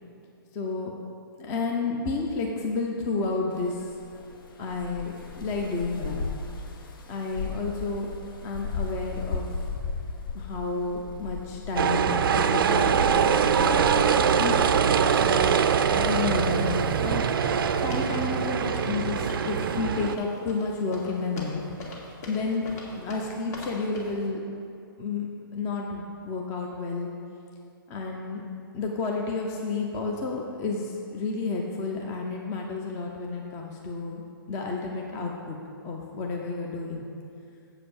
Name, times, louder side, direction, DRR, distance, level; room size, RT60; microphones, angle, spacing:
voice 1, 0.5-0.9 1.4-3.8 4.6-6.3 7.1-8.1 8.4-9.5 10.3-13.8 14.3-14.8 15.2-17.3 17.7-21.6 22.3-24.4 25.0-27.1 27.9-28.4 28.7-34.2 34.5-35.6 35.8-37.0, left 3 dB, 20° left, 0 dB, 0.7 m, -31 dB
sound 1, 3.5-18.9, left 4 dB, 65° left, 0.8 m, -38 dB
sound 2, 11.8-20.2, right 7 dB, 70° right, 0.4 m, -23 dB
sound 3, 17.1-24.2, left 2 dB, 45° left, 1.9 m, -42 dB
7.7 x 5.0 x 7.2 m, 2.5 s
hypercardioid pair, 150°, 12 cm